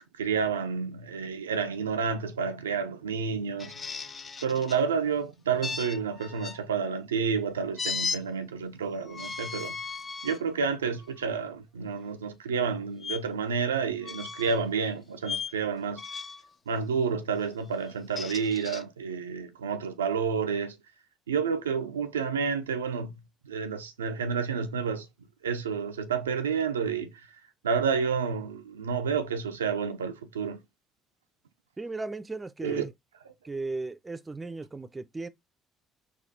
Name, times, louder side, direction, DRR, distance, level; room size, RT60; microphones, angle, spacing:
voice 1, 0.2-3.7 4.4-9.7 10.2-16.0 16.7-20.8 21.3-23.1 23.4-25.1 25.4-27.1 27.6-30.6 32.6-32.8, right 6 dB, 90° right, 0.3 m, -30 dB
sound 1, 3.6-4.8 5.6-6.6 7.8-8.2 9.0-10.4 11.0-11.2 13.0-13.2 14.0-14.6 15.2-15.5 16.0-16.5 17.9-18.8, left 5 dB, 35° left, 0.5 m, -36 dB
voice 2, 31.8-32.9 33.4-35.3, right 3 dB, 20° right, 0.4 m, -36 dB
4.1 x 2.3 x 2.6 m
hypercardioid pair, 55°, 0 cm